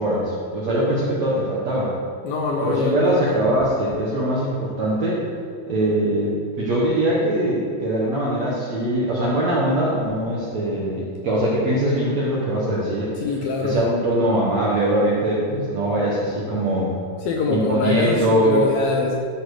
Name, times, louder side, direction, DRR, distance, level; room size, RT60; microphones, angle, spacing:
voice 1, 0.0-1.9 2.6-5.2 5.7-13.1 13.6-16.9 17.5-18.7, right 1 dB, 65° right, -6 dB, 1.7 m, -22 dB
voice 2, 2.2-3.4 13.2-13.9 17.2-19.2, left 3 dB, 75° left, 0 dB, 2.2 m, -24 dB
12.5 x 6.4 x 4.9 m, 2.4 s
omnidirectional pair, 4.9 m